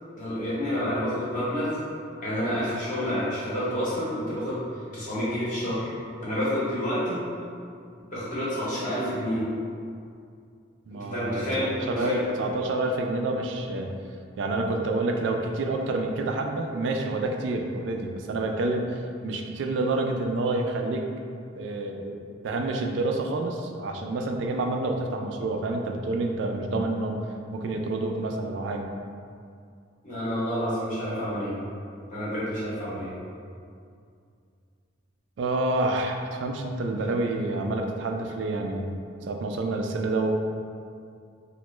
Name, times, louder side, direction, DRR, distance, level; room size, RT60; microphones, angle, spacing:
voice 1, 0.1-1.8 2.2-4.6 4.9-5.9 6.2-7.2 8.1-9.5 10.9-12.2 30.0-31.6 32.1-33.1, equal, 45° left, -9 dB, 1.0 m, -29 dB
voice 2, 10.9-14.0 14.4-21.1 21.5-22.2 22.4-27.2 27.5-28.9 35.4-40.3, right 2 dB, 70° right, 3 dB, 0.3 m, -28 dB
3.0 x 2.1 x 3.1 m, 2.4 s
head